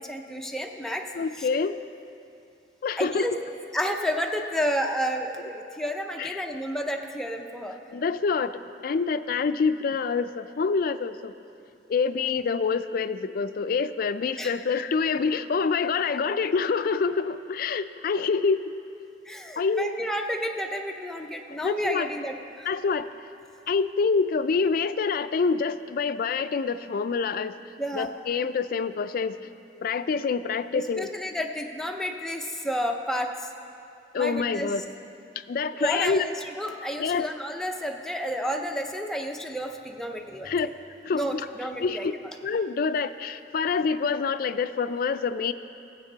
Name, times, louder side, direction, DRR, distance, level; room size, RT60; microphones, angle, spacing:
voice 1, 0.0-1.0 1.4-1.5 3.0-3.3 3.7-7.8 14.4-14.6 19.3-22.7 27.8-28.1 30.7-33.5 34.1-34.7 35.8-40.7 41.1-42.1, equal, 5° left, 2 dB, 0.6 m, -31 dB
voice 2, 1.1-1.8 2.8-3.3 6.2-6.4 7.9-11.3 11.9-18.6 19.6-19.9 21.6-22.1 22.7-23.1 23.7-27.6 27.9-29.4 29.8-31.1 34.1-34.8 35.5-36.2 37.0-37.3 40.4-40.7 41.0-41.4 41.8-42.1 42.4-45.5, left 5 dB, 55° left, 11 dB, 0.4 m, -26 dB
17.0 x 8.0 x 4.0 m, 2.6 s
head